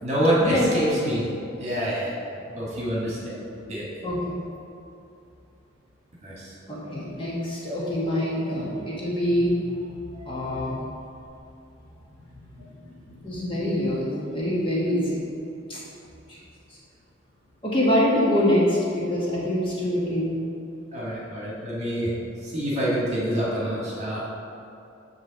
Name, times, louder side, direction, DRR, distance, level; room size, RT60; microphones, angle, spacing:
voice 1, 0.0-1.3 1.6-2.2 2.5-3.4 3.6-4.0 6.2-6.5 10.1-10.4 20.9-22.1 22.4-24.2, equal, 35° right, -6 dB, 1.5 m, -26 dB
voice 2, 4.0-4.4 6.7-9.5 10.3-10.8 13.2-15.2 15.7-15.8 16.3-16.4 17.6-20.4, left 1 dB, 25° left, -6 dB, 1.1 m, -25 dB
7.4 x 3.2 x 6.2 m, 2.6 s
head